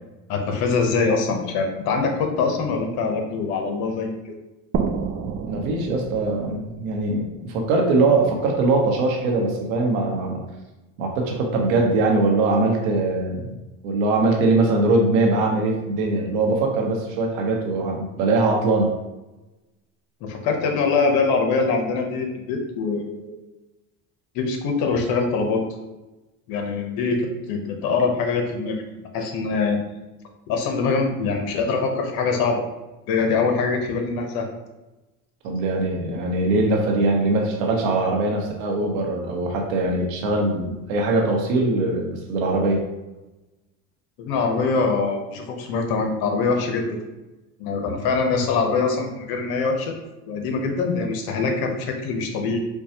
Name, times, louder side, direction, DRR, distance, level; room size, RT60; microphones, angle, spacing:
voice 1, 0.3-4.2 20.2-23.3 24.3-25.6 26.5-29.8 30.5-32.6 33.1-34.5 44.2-47.0 47.6-49.9 50.3-52.6, left 4 dB, 60° left, 3 dB, 0.9 m, -23 dB
sound 1, 4.7-8.3, right 6 dB, 35° right, 0.4 m, -30 dB
voice 2, 5.5-10.5 11.0-13.5 13.8-18.9 35.4-42.8, right 2 dB, 85° right, 1 dB, 1.0 m, -21 dB
4.5 x 2.3 x 2.8 m, 1.0 s
supercardioid pair, 100°, 41 cm